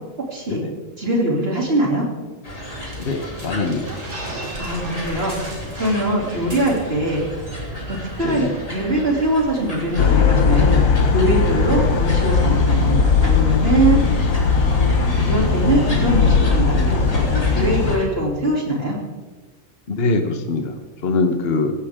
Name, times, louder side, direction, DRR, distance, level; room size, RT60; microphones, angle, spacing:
voice 1, 1.0-2.0 4.6-5.3 5.8-7.2 7.9-8.5 8.7-10.8 11.1-14.0 14.7-14.8 15.2-19.0, right 1 dB, 50° right, -2 dB, 3.4 m, -22 dB
sound 1, 2.4-18.0, equal, 25° left, 3.2 m, -33 dB
sound 2, 2.9-7.1 7.4-7.6 7.9-8.3, right 2 dB, 70° right, 3.8 m, -36 dB
voice 2, 3.0-3.9 6.3-6.5 8.2-8.6 19.9-21.7, left 3 dB, 50° left, 5 dB, 1.4 m, -23 dB
sound 3, 10.0-18.0, left 5 dB, 85° left, 1.5 m, -18 dB
17.0 x 15.5 x 3.7 m, 1.3 s
omnidirectional pair, 1.4 m